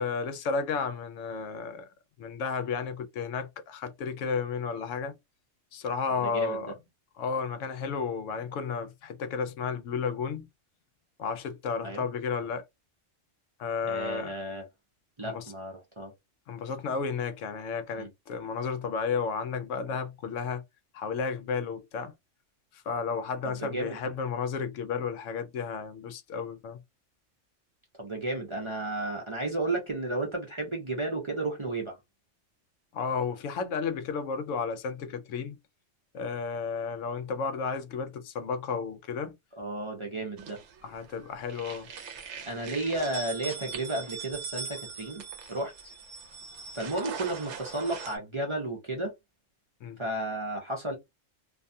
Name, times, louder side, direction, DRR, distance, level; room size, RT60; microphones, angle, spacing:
voice 1, 0.0-1.9 2.2-5.2 5.7-6.7 7.2-10.5 11.2-12.6 13.6-14.3 15.2-15.5 16.5-20.6 20.9-22.1 22.7-26.8 32.9-35.6 36.1-39.3 40.8-41.9 49.8-50.0, left 5 dB, 75° left, 0.9 m, -32 dB
voice 2, 6.2-6.6 11.8-12.1 13.8-14.7 15.2-16.1 18.0-18.1 23.4-24.0 28.0-32.0 39.6-40.6 42.5-45.2 45.5-45.7 46.7-49.1 50.0-51.0, right 2 dB, 30° right, 0.6 m, -33 dB
sound 1, 40.4-41.1 41.4-48.2, right 5 dB, 70° right, 0.9 m, -41 dB
2.5 x 2.3 x 2.6 m
omnidirectional pair, 1.3 m